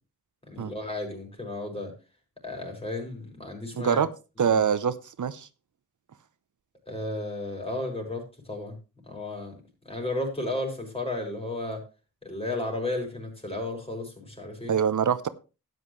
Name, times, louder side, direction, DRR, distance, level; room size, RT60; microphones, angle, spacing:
voice 1, 0.5-1.9 2.4-4.0 4.4-4.6 6.9-8.7 9.1-11.8 12.2-14.7, left 2 dB, 20° left, 4.9 m, -33 dB
voice 2, 3.7-4.1 4.4-5.5 14.7-15.3, right 7 dB, 70° right, 0.8 m, -24 dB
12.0 x 9.5 x 3.2 m
cardioid pair, 60°, 32 cm